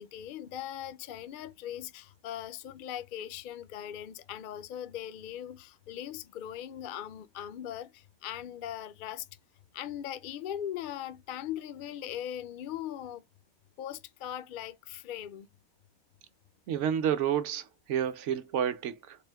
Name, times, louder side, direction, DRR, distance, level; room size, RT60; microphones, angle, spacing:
voice 1, 0.0-9.2 9.7-13.2 13.8-15.5, left 11 dB, 70° left, 0.5 m, -40 dB
voice 2, 16.7-19.2, right 9 dB, 65° right, 0.9 m, -30 dB
4.3 x 2.5 x 3.3 m
omnidirectional pair, 1.4 m